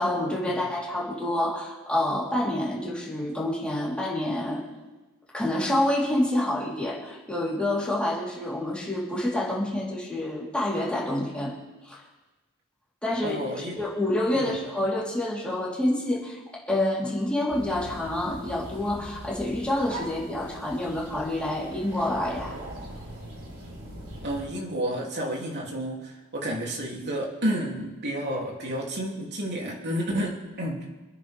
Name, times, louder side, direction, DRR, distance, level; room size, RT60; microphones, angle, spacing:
voice 1, 0.0-4.6 5.3-11.5 11.8-12.0 13.0-22.5, left 1 dB, 5° left, -7 dB, 4.0 m, -28 dB
voice 2, 13.2-13.8 14.3-14.6 24.2-30.9, right 1 dB, 50° right, -2 dB, 3.1 m, -31 dB
sound 1, 17.5-24.5, right 1 dB, 80° right, 4.2 m, -41 dB
27.0 x 10.0 x 3.7 m, 1.2 s
head